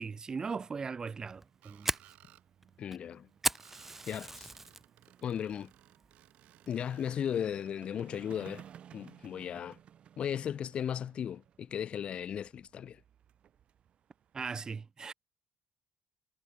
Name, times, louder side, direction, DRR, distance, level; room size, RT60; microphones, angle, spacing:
voice 1, 0.0-1.9 14.3-15.1, right 5 dB, 30° right, 1.8 m, -38 dB
sound 1, 0.6-14.4, right 9 dB, 55° right, 4.8 m, -59 dB
Fire, 1.3-4.8 5.2-5.6 6.0-6.1 6.7-7.0, right 2 dB, 10° right, 0.5 m, -36 dB
Screech, 1.6-2.4 3.5-7.6, right 16 dB, 80° right, 5.5 m, -61 dB
voice 2, 2.8-3.3 4.1-4.5 5.2-5.7 6.7-8.6 8.9-9.8 10.2-13.0, left 9 dB, 50° left, 1.2 m, -36 dB
cardioid pair, 100°, 2 cm